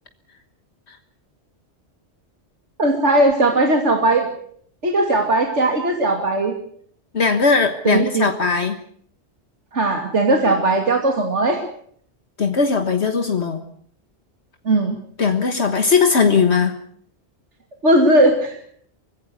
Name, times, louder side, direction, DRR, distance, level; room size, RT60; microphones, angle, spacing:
voice 1, 2.8-4.3 4.8-6.5 7.8-8.3 9.7-11.6 14.6-14.9 17.8-18.5, right 2 dB, 90° right, 2 dB, 2.9 m, -18 dB
voice 2, 7.1-8.8 12.4-13.6 15.2-16.7, left 5 dB, 70° left, 6 dB, 1.7 m, -18 dB
24.0 x 16.0 x 8.1 m, 0.62 s
omnidirectional pair, 1.2 m